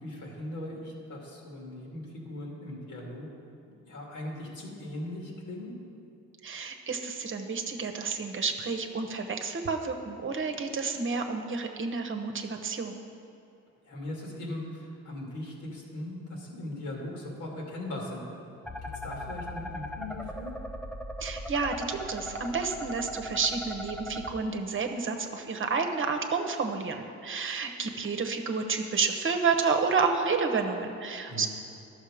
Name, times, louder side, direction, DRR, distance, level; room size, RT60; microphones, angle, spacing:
voice 1, 0.0-3.3 3.8-5.7 13.8-18.2 18.8-20.5 31.3-31.5, left 1 dB, 75° left, -2 dB, 2.4 m, -39 dB
voice 2, 6.4-13.0 21.2-31.5, right 4 dB, 40° right, 4 dB, 1.0 m, -30 dB
sound 1, 18.6-24.3, equal, 5° left, 0.6 m, -39 dB
11.5 x 6.6 x 5.0 m, 2.7 s
cardioid pair, 90°, 30 cm